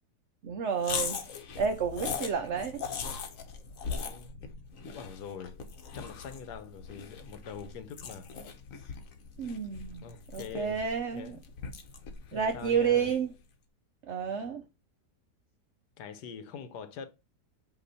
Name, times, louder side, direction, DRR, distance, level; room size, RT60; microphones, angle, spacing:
voice 1, 0.4-1.2 1.6-2.8 9.4-10.0 10.3-11.4 12.3-13.3 14.1-14.6, right 7 dB, 65° right, 0.7 m, -30 dB
sound 1, 0.8-13.3, left 6 dB, 60° left, 1.2 m, -40 dB
voice 2, 3.9-4.5 4.8-5.6 5.9-8.3 10.0-11.4 12.3-13.1 16.0-17.1, left 7 dB, 80° left, 1.4 m, -44 dB
7.8 x 3.0 x 4.1 m
omnidirectional pair, 1.8 m